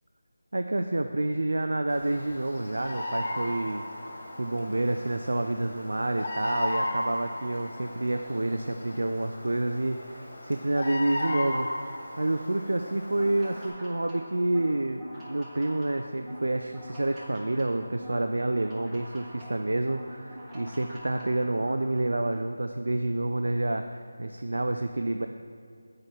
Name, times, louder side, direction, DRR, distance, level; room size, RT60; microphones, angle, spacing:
voice 1, 0.5-3.8 4.4-25.3, right 2 dB, 80° right, 6 dB, 0.3 m, -29 dB
Bird vocalization bird call bird song, 1.9-13.7, left 1 dB, 50° left, 1.5 m, -36 dB
sound 1, 13.1-21.9, equal, 10° right, 0.9 m, -45 dB
7.3 x 4.7 x 4.4 m, 2.2 s
figure-of-eight pair, 170°, 0 cm